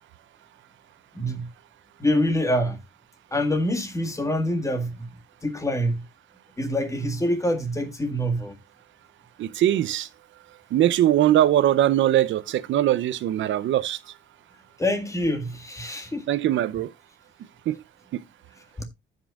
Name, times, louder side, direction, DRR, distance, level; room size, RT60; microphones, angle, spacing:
voice 1, 1.1-1.5 2.0-2.8 3.3-5.1 5.4-6.0 6.6-8.6 14.8-16.3 18.8-18.9, equal, 15° left, 1.9 m, -25 dB
voice 2, 9.4-10.1 10.7-14.0 16.3-16.9 17.7-17.8 18.1-18.2, right 12 dB, 70° right, 0.7 m, -21 dB
15.0 x 5.5 x 2.4 m
cardioid pair, 90°, 20 cm